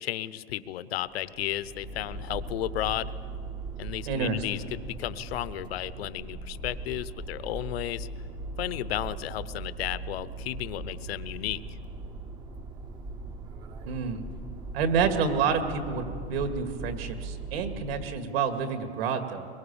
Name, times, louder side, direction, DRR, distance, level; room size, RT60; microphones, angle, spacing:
voice 1, 0.0-3.1 3.8-8.1 8.6-11.6, left 13 dB, 65° left, 16 dB, 0.9 m, -33 dB
sound 1, 1.1-18.3, right 2 dB, 15° right, 0.6 m, -39 dB
voice 2, 4.1-4.4 13.9-14.2 14.7-19.5, right 6 dB, 65° right, 6 dB, 2.3 m, -28 dB
22.5 x 22.5 x 7.1 m, 2.4 s
supercardioid pair, 165°, 33 cm